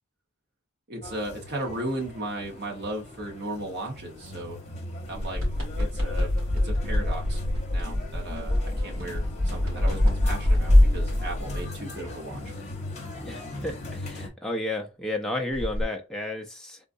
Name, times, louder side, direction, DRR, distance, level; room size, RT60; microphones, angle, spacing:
voice 1, 0.9-4.6 5.1-5.4 5.8-6.3 6.6-7.4 7.7-12.4, right 1 dB, 50° right, 1.0 m, -36 dB
sound 1, 1.0-14.3, left 2 dB, 30° left, 0.9 m, -39 dB
sound 2, 5.1-11.7 15.5-15.8, left 1 dB, 85° right, 2.1 m, -24 dB
voice 2, 13.2-16.8, left 1 dB, 5° left, 0.4 m, -32 dB
3.7 x 2.4 x 2.6 m
head